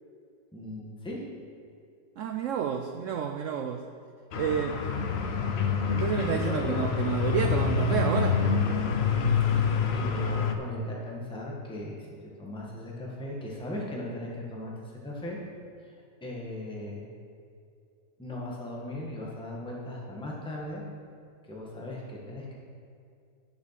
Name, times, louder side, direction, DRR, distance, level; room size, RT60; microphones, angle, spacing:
voice 1, 0.5-1.2 6.1-6.8 9.9-12.1 12.4-15.4 15.8-15.9 16.2-17.1 18.2-20.8 21.5-22.5, left 1 dB, 5° left, -4 dB, 1.4 m, -38 dB
voice 2, 2.2-3.8 4.4-4.8 5.9-8.4, right 7 dB, 85° right, 6 dB, 0.7 m, -30 dB
sound 1, 4.3-10.5, left 5 dB, 60° left, 0.7 m, -27 dB
9.6 x 7.0 x 5.9 m, 2.4 s
omnidirectional pair, 1.9 m